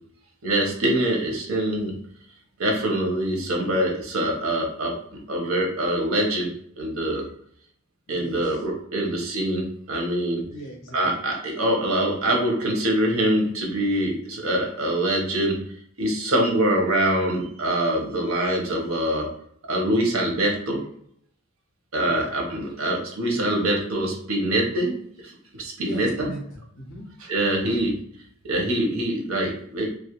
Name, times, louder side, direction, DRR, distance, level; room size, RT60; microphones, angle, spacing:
voice 1, 0.4-1.9 2.6-4.9 5.3-6.5 6.8-7.2 8.1-10.4 10.9-15.6 16.0-19.3 19.7-20.8 21.9-25.0 25.2-25.3 25.6-26.3 27.2-27.9 28.4-30.0, right 1 dB, 85° right, 0 dB, 0.8 m, -24 dB
voice 2, 8.1-8.6 10.5-11.0 22.1-22.2 25.8-27.1 27.6-27.8, right 1 dB, 70° left, -1 dB, 0.6 m, -39 dB
2.3 x 2.1 x 2.8 m, 0.66 s
head